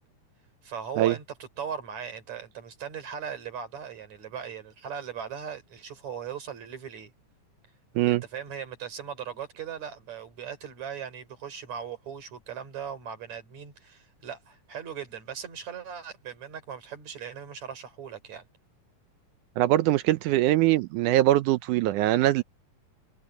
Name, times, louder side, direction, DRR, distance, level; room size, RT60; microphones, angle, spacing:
voice 1, 0.6-1.2 1.6-7.1 8.0-18.5, right 7 dB, 55° right, 4.9 m, -38 dB
voice 2, 19.6-22.4, right 15 dB, 80° right, 1.9 m, -22 dB
omnidirectional pair, 4.0 m